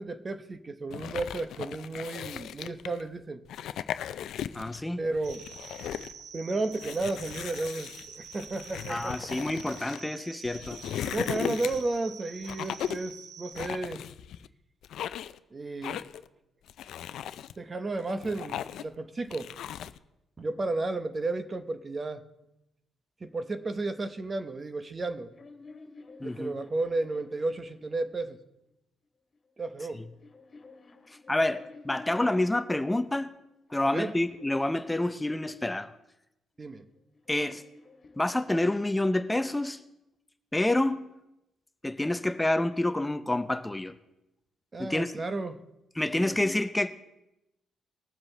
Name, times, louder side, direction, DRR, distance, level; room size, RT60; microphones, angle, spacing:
voice 1, 0.0-3.4 5.0-5.4 6.3-9.1 11.0-14.1 15.5-16.0 17.6-19.5 20.4-22.2 23.2-25.3 26.2-28.4 29.6-30.1 33.8-34.2 36.6-36.9 44.7-45.6 46.0-46.4, right 2 dB, 30° right, 0.9 m, -33 dB
sound 1, 0.9-3.0 3.4-4.8 5.1-6.1 6.7-10.0 10.4-12.0 12.4-13.1 13.5-14.5 14.8-15.4 15.8-16.3 16.7-17.5 18.0-18.9 19.3-20.0, left 10 dB, 75° left, 0.4 m, -37 dB
voice 2, 4.5-5.0 8.9-10.8 26.2-26.5 31.3-33.3 33.7-35.9 37.3-37.6 38.2-39.8 40.5-41.0 41.8-44.0 44.8-45.1 46.0-46.9, left 1 dB, 10° left, 0.5 m, -28 dB
sound 2, 5.2-13.7, right 7 dB, 80° right, 1.1 m, -47 dB
sound 3, 25.0-28.4 29.3-32.7 33.4-35.8 36.8-39.2, left 3 dB, 35° left, 2.6 m, -53 dB
20.5 x 7.5 x 3.2 m
cardioid pair, 100°, 0 cm